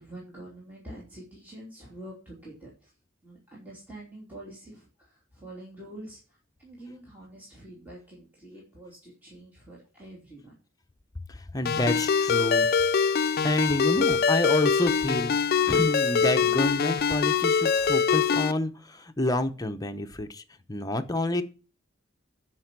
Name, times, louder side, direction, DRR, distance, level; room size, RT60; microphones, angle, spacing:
voice 1, 0.0-2.9 3.2-10.5, right 1 dB, 10° right, -5 dB, 2.8 m, -46 dB
voice 2, 11.5-12.7 13.4-15.3 15.6-20.4 20.7-21.4, left 1 dB, 20° left, 7 dB, 0.9 m, -28 dB
Ringtone, 11.7-18.5, left 6 dB, 50° left, 0.4 m, -24 dB
12.5 x 5.3 x 6.1 m, 0.36 s
head